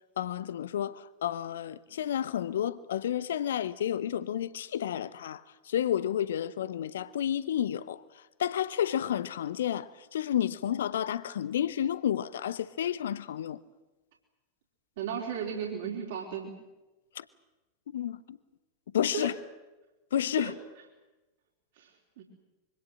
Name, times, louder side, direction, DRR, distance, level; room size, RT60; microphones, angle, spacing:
voice 1, 0.2-5.4 5.7-8.0 8.4-13.6 17.2-17.3 17.9-18.4 18.9-19.3 20.1-20.5, left 10 dB, 60° left, 0.9 m, -31 dB
voice 2, 15.0-16.5 19.1-19.3 20.4-20.5 21.8-21.9 22.2-22.3, right 8 dB, 55° right, 4.0 m, -35 dB
25.5 x 24.0 x 7.7 m
figure-of-eight pair, 90°, 0 cm